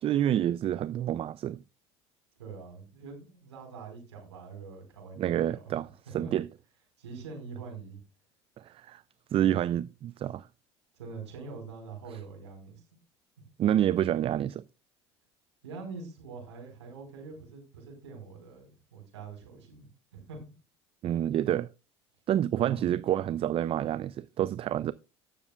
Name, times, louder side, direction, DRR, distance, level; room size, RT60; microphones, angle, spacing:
voice 1, 0.0-1.6 5.2-5.9 6.1-6.5 8.6-9.0 9.3-10.5 13.6-14.6 21.0-21.7 22.3-24.9, right 11 dB, 40° right, 0.4 m, -28 dB
voice 2, 2.4-5.6 6.1-6.3 7.0-8.0 9.4-9.6 10.9-12.8 13.4-13.5 15.6-20.4 22.6-22.8, right 5 dB, 85° right, 4.3 m, -44 dB
19.0 x 6.8 x 2.3 m
hypercardioid pair, 70°, 14 cm